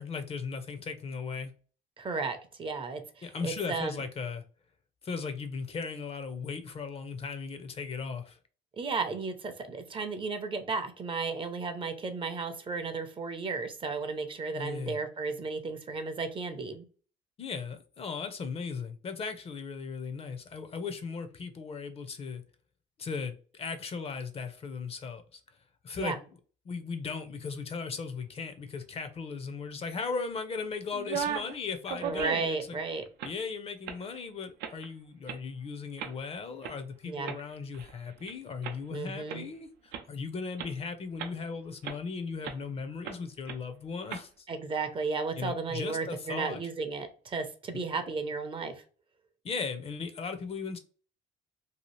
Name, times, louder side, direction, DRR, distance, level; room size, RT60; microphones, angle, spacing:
voice 1, 0.0-1.5 3.2-4.4 5.0-8.4 14.5-15.0 17.4-22.4 23.0-25.4 25.8-26.2 26.6-32.8 33.2-44.5 45.4-46.6 47.7-47.8 49.4-50.8, left 5 dB, 35° left, 0.5 m, -37 dB
voice 2, 2.0-4.0 8.8-16.8 26.0-26.2 32.0-33.0 37.0-37.4 38.9-39.4 44.5-48.8, right 4 dB, 30° right, 0.5 m, -34 dB
sound 1, 30.9-31.6 31.9-32.6 33.1-33.4 33.9-34.0 34.6-34.9 35.3-35.4 36.0-36.1 36.6-36.7 37.3-38.3 38.6-38.8 39.3-39.4 39.9-40.0 40.6-40.7 41.2-41.5 41.8-42.0 42.4-42.6 43.0-43.2 43.5-43.6 44.1-44.2, right 8 dB, 85° right, 0.5 m, -36 dB
2.7 x 2.4 x 3.0 m
cardioid pair, 110°, 17 cm